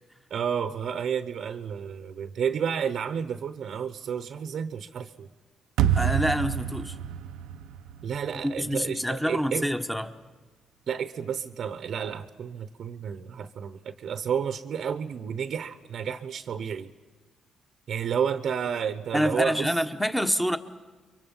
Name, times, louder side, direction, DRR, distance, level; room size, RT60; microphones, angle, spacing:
voice 1, 0.3-5.3 8.0-9.7 10.9-16.9 17.9-19.7, right 7 dB, 65° right, 11 dB, 0.9 m, -31 dB
sound 1, 5.8-8.9, right 10 dB, 90° right, 0.6 m, -28 dB
voice 2, 6.0-7.0 8.4-10.1 19.1-20.6, equal, 5° left, 9 dB, 1.2 m, -26 dB
30.0 x 23.5 x 5.5 m, 1.4 s
cardioid pair, 90°, 0 cm